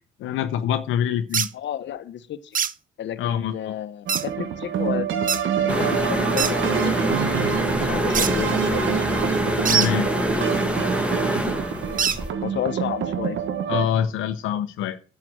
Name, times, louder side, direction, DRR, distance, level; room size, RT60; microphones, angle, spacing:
voice 1, 0.2-1.5 3.2-3.7 7.6-8.0 9.7-10.1 11.7-11.8 13.7-15.0, left 9 dB, 90° left, 0.8 m, -25 dB
sound 1, 1.3-1.5 2.5-2.7 4.1-4.2 5.3-5.4 6.4-6.5 8.1-8.3 9.7-9.9 12.0-12.2, right 7 dB, 45° right, 0.7 m, -22 dB
voice 2, 1.5-2.6 3.0-5.1 5.6-7.2 7.8-9.0 11.8-13.4, left 10 dB, 65° left, 1.0 m, -32 dB
sound 2, 4.1-13.9, right 8 dB, 80° right, 1.3 m, -27 dB
sound 3, 5.7-12.3, equal, 5° right, 2.1 m, -25 dB
9.3 x 7.7 x 7.6 m
cardioid pair, 90°, 20 cm